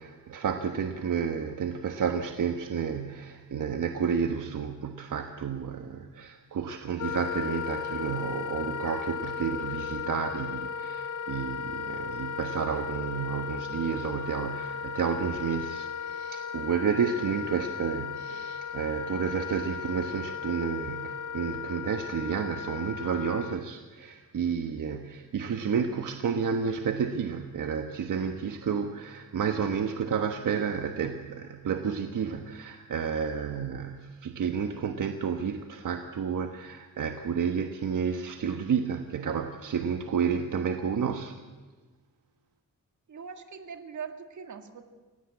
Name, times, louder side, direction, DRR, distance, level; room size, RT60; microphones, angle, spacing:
voice 1, 0.0-41.4, right 7 dB, 85° right, 1.3 m, -31 dB
Wind instrument woodwind instrument, 7.0-23.6, left 7 dB, 80° left, 1.1 m, -36 dB
voice 2, 43.1-44.8, right 6 dB, 65° right, 2.1 m, -41 dB
28.5 x 17.0 x 8.4 m
wide cardioid pair, 165°, 31 cm